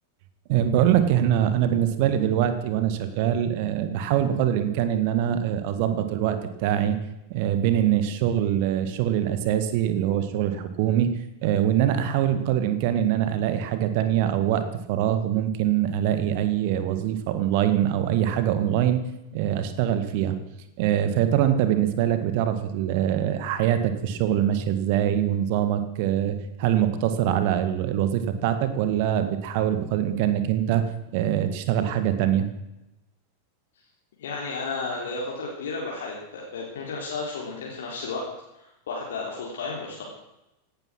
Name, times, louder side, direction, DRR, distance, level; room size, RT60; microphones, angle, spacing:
voice 1, 0.5-7.0 7.3-19.0 19.3-20.4 20.8-32.5, right 10 dB, 50° right, 10 dB, 1.8 m, -23 dB
voice 2, 34.2-38.3 38.5-40.0, left 3 dB, 60° left, -3 dB, 3.5 m, -33 dB
17.0 x 12.0 x 6.2 m, 0.92 s
figure-of-eight pair, 90°, 0 cm